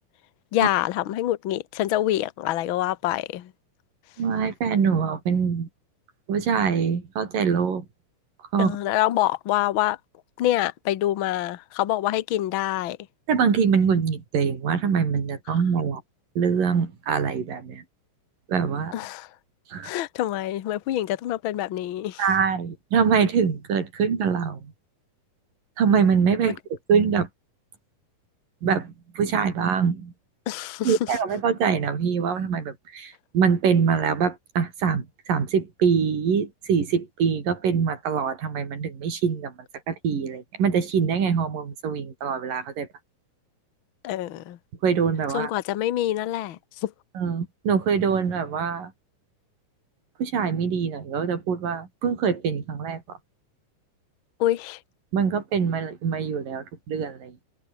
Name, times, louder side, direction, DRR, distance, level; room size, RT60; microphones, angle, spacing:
voice 1, 0.5-3.5 8.6-10.0 10.4-13.0 18.9-19.3 19.8-22.2 26.4-26.5 30.5-31.0 44.0-44.6 45.3-46.9 54.4-54.8, left 14 dB, 85° left, 1.1 m, -26 dB
voice 2, 4.2-5.7 6.3-7.8 8.5-8.8 13.3-16.0 16.4-17.8 18.5-19.0 19.7-19.9 22.2-24.7 25.8-26.6 26.9-27.3 28.6-30.1 30.9-39.5 39.9-42.9 44.8-45.5 47.2-48.9 50.2-53.0 55.1-57.3, right 6 dB, 80° right, 5.5 m, -24 dB
omnidirectional pair, 3.9 m